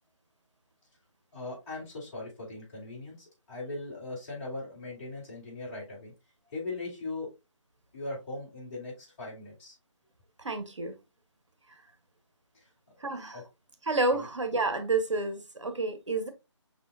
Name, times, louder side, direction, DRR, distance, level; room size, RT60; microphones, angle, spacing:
voice 1, 1.3-6.1 6.5-7.3 7.9-9.7 12.5-12.7 13.3-13.4 14.1-14.3, left 2 dB, 25° left, 2.8 m, -39 dB
voice 2, 10.4-11.0 13.0-13.4 13.9-16.3, right 3 dB, 70° right, 1.0 m, -29 dB
5.3 x 4.1 x 2.2 m
figure-of-eight pair, 155°, 16 cm